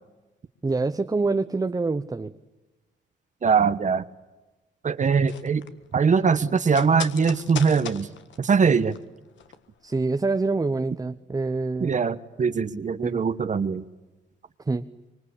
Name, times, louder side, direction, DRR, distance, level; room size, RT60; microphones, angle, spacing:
voice 1, 0.6-2.3 9.8-12.0 13.0-13.2 14.7-14.8, right 3 dB, 20° right, 8 dB, 0.9 m, -26 dB
voice 2, 3.4-4.0 4.8-5.6 5.9-8.1 8.4-9.0 11.8-13.8, right 5 dB, 40° right, 11 dB, 1.2 m, -22 dB
sound 1, 5.0-9.6 9.9-10.0, left 8 dB, 70° left, 1.7 m, -39 dB
25.0 x 23.5 x 8.4 m, 1.2 s
cardioid pair, 90°, 20 cm